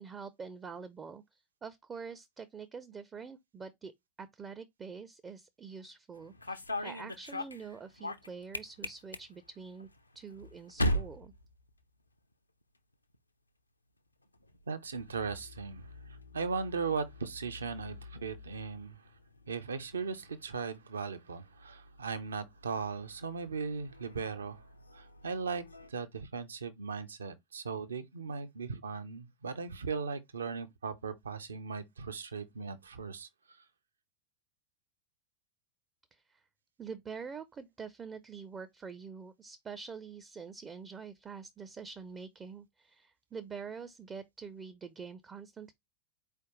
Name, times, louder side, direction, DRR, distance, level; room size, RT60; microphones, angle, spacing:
voice 1, 0.0-3.9 4.2-9.9 10.1-11.3 36.1-36.4 36.8-45.7, right 5 dB, 20° right, 0.4 m, -46 dB
sound 1, 6.1-12.3 12.6-13.2 14.2-25.9, equal, 85° left, 0.5 m, -42 dB
voice 2, 14.7-15.9 16.3-19.0 19.5-24.6 24.9-33.6, right 5 dB, 70° right, 0.6 m, -38 dB
4.4 x 3.3 x 3.0 m
figure-of-eight pair, 90°, 0 cm